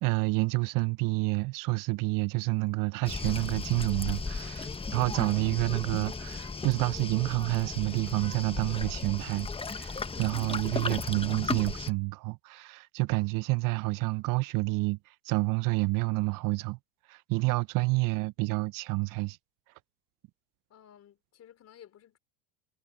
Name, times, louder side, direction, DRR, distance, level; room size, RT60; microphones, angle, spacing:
voice 1, 0.0-15.0 15.2-16.8 17.1-19.4, right 24 dB, 60° right, 0.7 m, -29 dB
Waves surf, 3.0-11.9, left 4 dB, 15° left, 1.3 m, -36 dB
voice 2, 20.7-22.2, left 10 dB, 45° left, 4.8 m, -55 dB
supercardioid pair, 100°, 37 cm